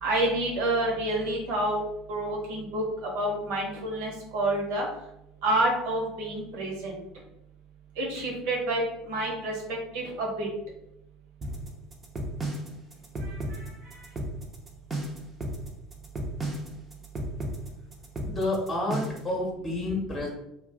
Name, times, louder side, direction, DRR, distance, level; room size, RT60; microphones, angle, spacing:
voice 1, 0.0-1.8 2.1-2.8 3.1-4.9 5.4-7.0 8.0-10.5 13.2-14.0, right 1 dB, 65° right, -1 dB, 1.1 m, -29 dB
sound 1, 11.4-19.3, right 1 dB, 30° right, 0.7 m, -34 dB
voice 2, 18.2-20.3, left 1 dB, 20° left, -1 dB, 0.9 m, -29 dB
2.5 x 2.4 x 3.5 m, 0.85 s
figure-of-eight pair, 70°, 0 cm